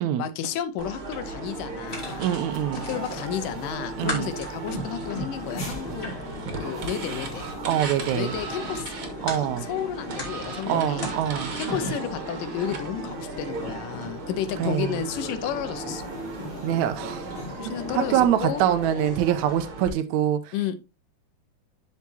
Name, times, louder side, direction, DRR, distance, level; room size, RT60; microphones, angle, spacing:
voice 1, 0.2-2.4 2.9-6.1 6.6-7.5 8.1-9.0 9.4-11.0 11.6-16.1 17.6-18.6 18.9-19.1 20.5-20.8, left 9 dB, 85° left, 2.5 m, -32 dB
sound 1, 0.8-19.9, right 3 dB, 50° right, 1.9 m, -36 dB
sound 2, 0.9-12.0, left 1 dB, 20° left, 2.2 m, -39 dB
sound 3, 1.9-18.2, left 2 dB, 40° left, 3.9 m, -41 dB
voice 2, 2.2-2.8 4.0-4.3 7.7-8.4 9.2-9.7 10.7-11.5 14.6-15.0 16.6-17.3 17.7-20.5, right 10 dB, 80° right, 1.8 m, -24 dB
12.0 x 4.7 x 2.8 m
omnidirectional pair, 3.8 m